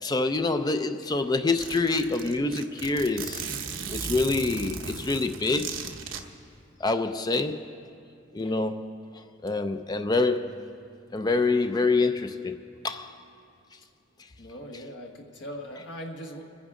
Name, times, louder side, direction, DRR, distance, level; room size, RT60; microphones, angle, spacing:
voice 1, 0.0-3.5 3.9-5.7 6.8-7.7 8.3-9.0 9.4-10.5 11.1-13.1, left 3 dB, 20° left, 0.4 m, -26 dB
Zipper (clothing), 0.8-0.9 1.1-1.2 1.6-6.2, right 5 dB, 75° right, 1.0 m, -36 dB
voice 2, 14.4-16.5, equal, 60° left, 1.5 m, -40 dB
27.0 x 10.5 x 3.7 m
head